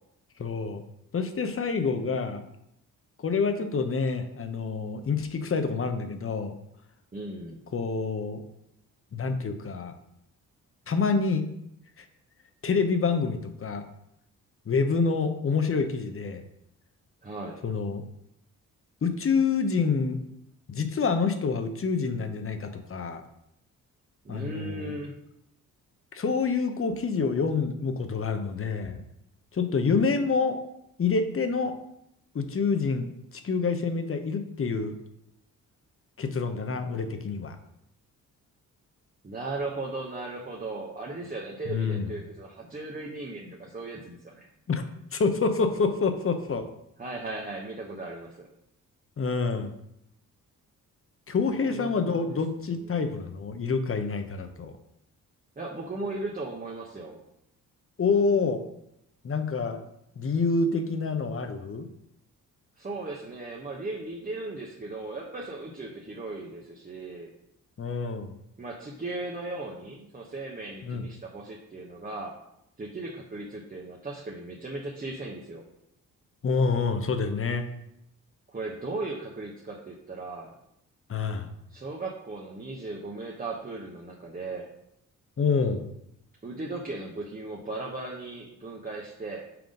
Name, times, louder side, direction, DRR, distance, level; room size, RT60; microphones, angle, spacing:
voice 1, 0.4-0.8 1.1-2.4 3.2-6.5 7.7-8.4 9.1-9.9 10.9-11.5 12.0-12.1 12.6-13.8 14.7-16.4 17.6-18.0 19.0-20.2 20.7-23.2 24.3-24.9 26.1-29.0 29.5-30.6 31.0-31.7 32.3-35.0 36.2-37.6 41.7-42.1 44.7-44.8 45.1-46.6 49.2-49.7 51.3-54.7 58.0-58.6 59.2-59.8 60.2-61.9 67.8-68.3 70.8-71.0 76.4-77.6 81.1-81.5 85.4-85.9, left 4 dB, 40° left, 8 dB, 0.9 m, -27 dB
voice 2, 7.1-7.6 17.2-17.6 24.2-25.2 39.2-44.5 47.0-48.5 51.5-52.3 52.8-53.1 55.6-57.2 62.8-67.3 68.6-72.4 72.8-75.6 78.5-80.5 81.7-84.7 86.4-89.5, right 2 dB, 25° right, -2 dB, 1.0 m, -37 dB
5.9 x 3.7 x 5.1 m, 0.80 s
supercardioid pair, 60°, 35 cm